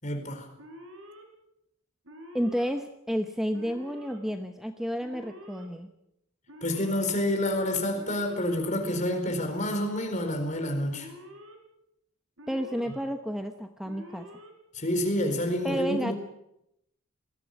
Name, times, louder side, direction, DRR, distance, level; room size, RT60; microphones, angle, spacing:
voice 1, 0.0-0.5 6.6-11.1 14.7-16.1, left 1 dB, 35° left, 4 dB, 4.6 m, -28 dB
Alarm, 0.6-1.2 2.0-2.7 3.5-4.2 5.0-5.7 6.5-7.1 7.9-8.6 9.4-10.1 10.9-11.6 12.4-13.0 13.8-14.5, equal, 65° right, 5.4 m, -47 dB
voice 2, 2.3-5.9 12.5-14.4 15.6-16.1, equal, ahead, 6 dB, 1.0 m, -31 dB
20.5 x 15.5 x 9.5 m, 0.83 s
head